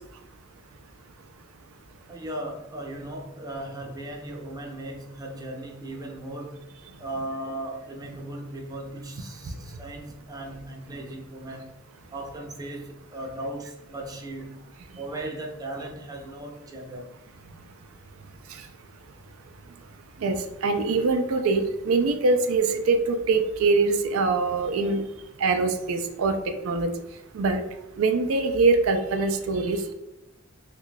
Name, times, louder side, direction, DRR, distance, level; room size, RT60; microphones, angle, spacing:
voice 1, 2.1-6.7 7.0-11.7 12.1-14.6 15.0-17.1, right 1 dB, 20° right, 0 dB, 0.5 m, -37 dB
voice 2, 20.2-25.0 25.4-26.9 27.3-27.6 28.0-29.9, right 3 dB, 90° right, 6 dB, 0.4 m, -23 dB
3.1 x 2.3 x 3.8 m, 0.95 s
head